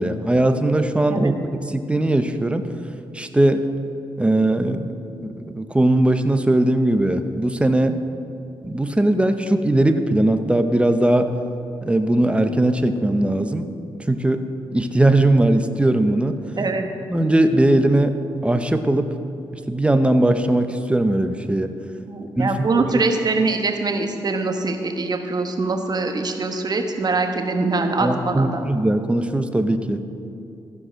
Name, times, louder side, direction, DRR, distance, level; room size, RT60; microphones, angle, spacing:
voice 1, 0.0-1.3 1.7-2.7 3.1-3.7 4.2-4.9 5.5-8.0 8.6-11.3 11.8-13.7 14.1-14.4 14.7-16.4 17.1-18.1 18.4-19.1 19.7-21.7 22.4-23.0 28.0-30.0, right 1 dB, 10° right, 8 dB, 0.8 m, -19 dB
voice 2, 22.1-28.6, right 3 dB, 45° right, 4 dB, 1.1 m, -23 dB
14.5 x 4.8 x 6.3 m, 2.6 s
cardioid pair, 60°, 10 cm